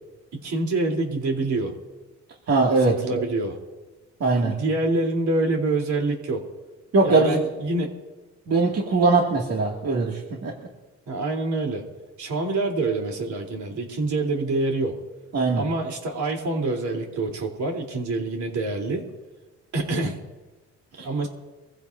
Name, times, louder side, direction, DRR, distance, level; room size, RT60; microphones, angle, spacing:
voice 1, 0.4-1.7 2.8-3.6 4.4-6.4 7.0-7.9 11.1-11.8 12.2-15.0 15.5-19.1 19.7-20.2 21.0-21.3, right 2 dB, 70° right, 1 dB, 3.7 m, -26 dB
voice 2, 2.5-3.2 4.2-4.5 6.9-7.4 8.5-10.5 15.3-15.6, right 3 dB, 55° right, -2 dB, 2.4 m, -21 dB
24.5 x 15.5 x 2.7 m, 1.2 s
cardioid pair, 90°, 30 cm